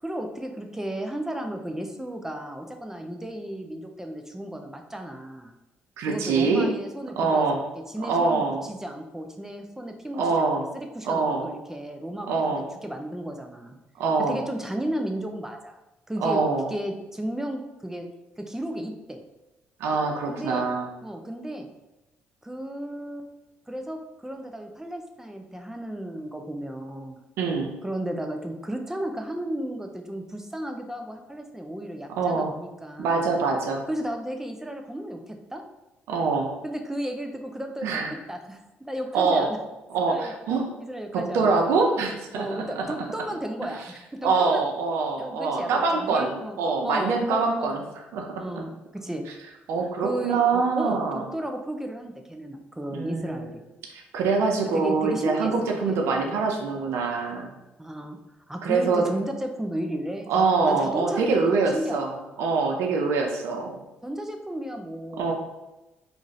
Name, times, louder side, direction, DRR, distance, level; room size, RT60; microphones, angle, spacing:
voice 1, 0.0-5.5 6.0-12.6 12.8-13.7 14.2-15.8 16.1-16.4 16.7-18.1 18.4-19.2 20.3-20.7 21.0-21.7 22.4-23.3 23.7-27.2 27.8-33.3 33.9-35.6 36.6-39.6 40.1-40.3 40.8-41.6 42.3-44.7 45.2-46.6 46.8-47.8 48.4-49.3 49.8-53.6 54.7-55.5 55.9-56.0 56.2-56.4 57.8-58.2 58.5-62.3 64.0-65.3, right 1 dB, 10° right, 4 dB, 0.4 m, -34 dB
voice 2, 6.0-6.7 7.2-7.6 8.0-8.6 10.2-10.6 11.0-11.5 12.3-12.6 14.0-14.4 16.2-16.7 19.8-20.9 27.4-27.7 32.2-32.5 33.0-33.8 36.1-36.5 37.8-38.1 39.1-39.5 39.9-40.1 40.5-40.6 41.1-42.9 44.2-47.8 48.1-48.4 49.7-51.2 52.9-53.4 53.9-57.5 58.6-59.0 60.3-63.8 65.2-65.3, right 4 dB, 80° right, 2 dB, 0.4 m, -24 dB
2.5 x 2.4 x 3.0 m, 1.0 s
supercardioid pair, 60°, 4 cm